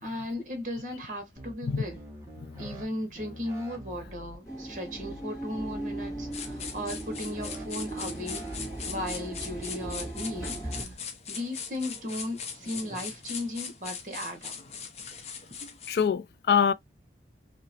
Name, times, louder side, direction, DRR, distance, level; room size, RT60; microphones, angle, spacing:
voice 1, 0.0-2.0 2.6-8.5 8.9-10.9 11.3-14.6, left 1 dB, 45° right, 1.3 m, -36 dB
sound 1, 1.4-2.8 3.1-4.4 4.9-5.2 5.5-7.6 7.9-9.2 9.7-10.0 10.3-10.9, equal, 15° right, 1.0 m, -45 dB
voice 2, 2.4-2.7 15.9-16.7, left 7 dB, 65° left, 0.3 m, -25 dB
sound 2, 4.4-10.8, right 2 dB, 15° left, 1.7 m, -38 dB
sound 3, 6.3-16.1, left 6 dB, 35° left, 0.7 m, -40 dB
3.0 x 2.9 x 2.7 m
head